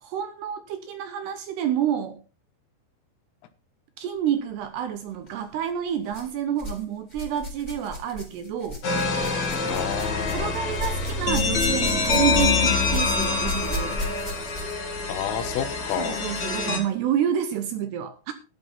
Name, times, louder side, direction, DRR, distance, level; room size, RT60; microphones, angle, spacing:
voice 1, 0.0-2.2 4.0-8.8 10.3-14.1 16.0-18.3, right 9 dB, 70° right, 2.7 m, -29 dB
sound 1, 5.1-5.3 6.1-6.8 7.1-14.9 15.8-15.9 16.7-16.8, left 1 dB, 10° left, 3.3 m, -34 dB
sound 2, 8.8-16.8, left 4 dB, 40° left, 3.9 m, -25 dB
voice 2, 9.6-10.5 15.1-16.2, left 10 dB, 90° left, 3.9 m, -30 dB
12.5 x 11.5 x 4.2 m
omnidirectional pair, 5.6 m